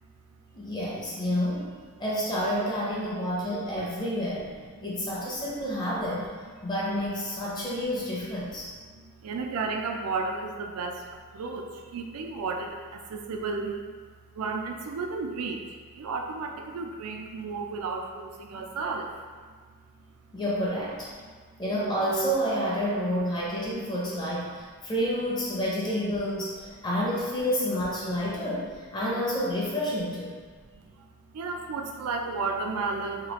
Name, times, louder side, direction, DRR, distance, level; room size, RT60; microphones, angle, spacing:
voice 1, 0.5-1.7 2.0-4.5 4.8-6.3 6.6-8.7 20.3-21.1 21.6-30.4, equal, 20° left, -6 dB, 0.6 m, -29 dB
voice 2, 4.8-5.1 8.9-14.0 14.3-15.7 15.9-19.1 21.2-21.3 26.7-26.8 30.7-31.1 31.3-33.3, right 4 dB, 80° right, 3 dB, 0.4 m, -33 dB
3.0 x 2.3 x 3.0 m, 1.5 s
head